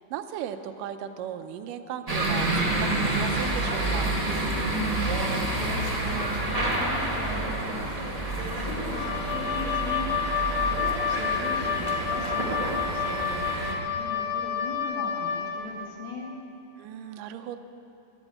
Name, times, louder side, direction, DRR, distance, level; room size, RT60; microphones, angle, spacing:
voice 1, 0.0-4.2 10.6-10.9 16.8-17.6, right 9 dB, 85° right, 8 dB, 2.3 m, -37 dB
sound 1, 2.1-13.7, right 2 dB, 25° right, 0.7 m, -28 dB
voice 2, 4.6-10.1 10.7-16.3, left 2 dB, 40° left, -2 dB, 2.3 m, -38 dB
Wind instrument woodwind instrument, 8.9-15.6, left 7 dB, 60° left, 1.6 m, -29 dB
13.5 x 11.5 x 8.5 m, 2.9 s
omnidirectional pair, 3.8 m